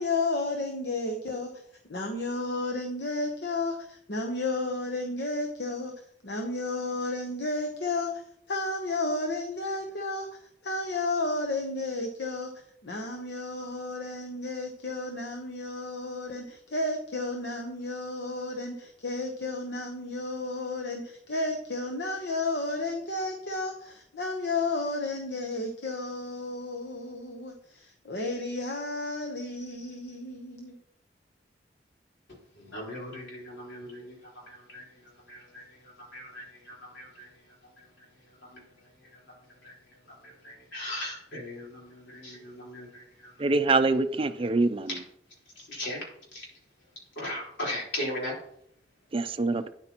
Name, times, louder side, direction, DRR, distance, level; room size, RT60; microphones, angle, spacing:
voice 1, 0.0-1.6 1.9-5.9 6.2-8.1 8.5-10.3 10.6-12.5 12.8-30.7, left 2 dB, 70° left, 0.9 m, -32 dB
voice 2, 32.5-39.2 39.5-43.4 45.6-46.0 46.3-46.5 47.2-48.4, left 1 dB, 90° left, 4.1 m, -39 dB
voice 3, 43.4-44.9 49.1-49.7, right 3 dB, 30° right, 0.4 m, -25 dB
9.6 x 8.2 x 2.9 m
head